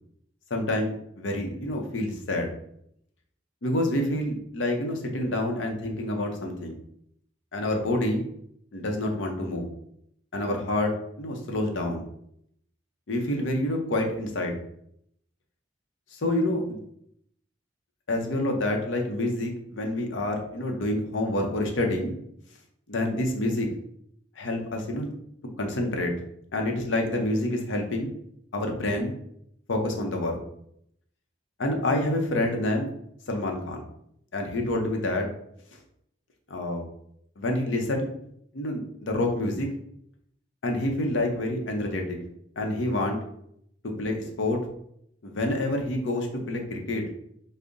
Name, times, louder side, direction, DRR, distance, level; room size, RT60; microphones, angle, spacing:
voice 1, 0.5-2.5 3.6-6.8 7.5-8.3 8.7-9.7 10.3-10.9 11.2-12.0 13.1-14.6 16.1-16.8 18.1-22.1 22.9-23.7 24.4-25.1 25.6-26.1 26.5-28.1 28.5-29.1 29.7-30.4 31.6-32.9 33.3-33.8 34.3-35.3 36.5-36.8 37.4-38.1 38.5-39.7 40.6-42.2 42.6-43.2 44.0-44.6 45.2-47.0, left 1 dB, 80° left, 2 dB, 0.7 m, -27 dB
3.8 x 2.1 x 3.6 m, 0.72 s
head